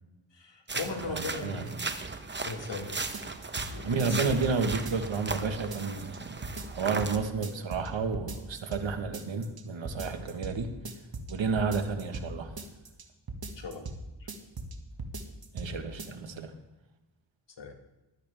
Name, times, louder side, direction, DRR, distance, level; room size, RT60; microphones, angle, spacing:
voice 1, 0.3-1.7 2.4-3.1 3.6-4.4 13.6-14.3 17.6-17.7, left 4 dB, 65° left, 4 dB, 1.9 m, -39 dB
sound 1, 0.7-7.2, right 3 dB, 25° right, 0.9 m, -37 dB
voice 2, 1.1-1.9 3.8-6.4 6.7-10.7 11.3-12.5 15.5-16.5, right 4 dB, 70° right, 7 dB, 1.5 m, -31 dB
sound 2, 3.1-3.7 4.0-5.4 5.7-6.2 6.4-7.1 7.4-7.9 8.1-8.9 9.1-9.6 9.9-10.6 10.9-12.3 12.6-13.0 13.3-14.0 14.3-14.7 15.0-15.7 16.0-16.1, right 3 dB, 50° right, 1.7 m, -38 dB
15.0 x 12.5 x 3.5 m, 1.1 s
cardioid pair, 70°, 47 cm